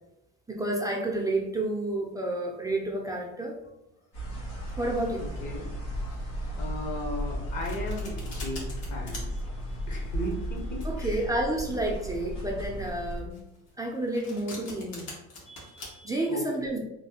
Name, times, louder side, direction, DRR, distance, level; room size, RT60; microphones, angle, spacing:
voice 1, 0.5-3.5 4.8-5.3 10.8-13.4 13.8-15.1 16.0-16.8, right 1 dB, 10° right, 0 dB, 0.4 m, -30 dB
sound 1, 4.1-13.2, equal, 90° left, 1.4 m, -35 dB
voice 2, 5.4-5.7 6.5-9.4 9.9-11.3 11.6-11.8 15.4-16.4, left 1 dB, 55° left, 0 dB, 1.2 m, -37 dB
Domestic sounds home sounds, 7.2-15.9, left 2 dB, 75° left, 1.4 m, -45 dB
3.2 x 2.3 x 2.8 m, 0.90 s
supercardioid pair, 85°, 35 cm